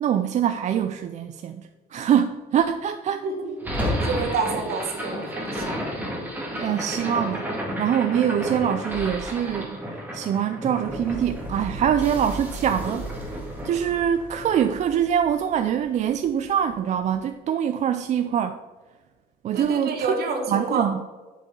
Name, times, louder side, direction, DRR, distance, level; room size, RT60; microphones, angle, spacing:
voice 1, 0.0-3.2 6.6-7.5 7.8-9.8 10.1-13.1 13.6-18.6 19.4-20.2 20.5-21.0, right 9 dB, 45° right, 8 dB, 0.4 m, -24 dB
voice 2, 3.2-3.6 4.0-5.7 19.5-20.9, right 4 dB, 65° right, 4 dB, 1.4 m, -28 dB
sound 1, 3.6-15.8, equal, 10° right, 1.8 m, -32 dB
7.3 x 5.3 x 3.8 m, 1.3 s
cardioid pair, 110°, 17 cm